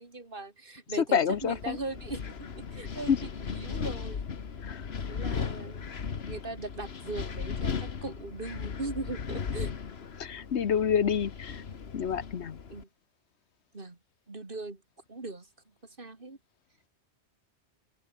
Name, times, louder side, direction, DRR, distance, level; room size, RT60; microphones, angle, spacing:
voice 1, 0.0-4.3 5.1-5.9 6.3-9.7 12.7-12.9 13.7-14.0 14.3-14.8 15.1-15.5 16.0-16.4, right 3 dB, 55° right, 2.8 m, -39 dB
voice 2, 1.0-1.8 3.1-3.2 4.6-4.9 10.2-11.6 11.9-12.6, left 7 dB, 85° left, 1.3 m, -28 dB
Wind, 1.3-12.8, left 6 dB, 70° left, 1.6 m, -37 dB
open air
omnidirectional pair, 1.1 m